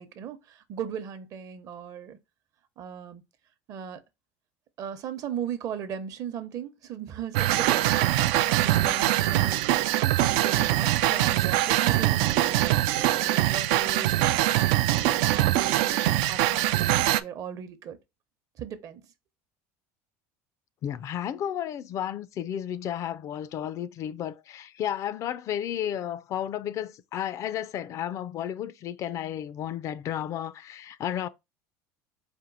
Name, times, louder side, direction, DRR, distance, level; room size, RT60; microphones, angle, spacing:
voice 1, 0.0-2.2 2.8-3.2 3.7-4.0 4.8-7.9 8.5-9.9 10.2-14.6 15.1-18.0 18.6-19.0, right 8 dB, 50° right, 0.8 m, -37 dB
sound 1, 7.3-17.2, right 15 dB, 75° right, 0.4 m, -23 dB
voice 2, 20.8-31.3, left 10 dB, 45° left, 0.4 m, -32 dB
4.4 x 2.6 x 3.8 m
supercardioid pair, 110°, 7 cm